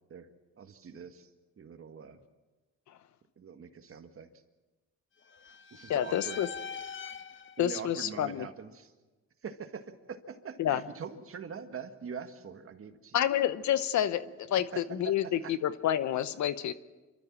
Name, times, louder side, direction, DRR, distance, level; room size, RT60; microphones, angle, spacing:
voice 1, 0.6-1.3 1.6-2.2 3.4-4.3 5.7-6.4 7.6-8.9 9.4-13.2 14.7-15.5, right 6 dB, 45° right, 1.8 m, -43 dB
voice 2, 5.3-7.5, left 6 dB, 40° left, 1.0 m, -43 dB
voice 3, 5.9-6.5 7.6-8.5 10.6-10.8 13.1-16.7, left 10 dB, 70° left, 1.0 m, -29 dB
28.5 x 13.0 x 7.4 m
cardioid pair, 90°, 30 cm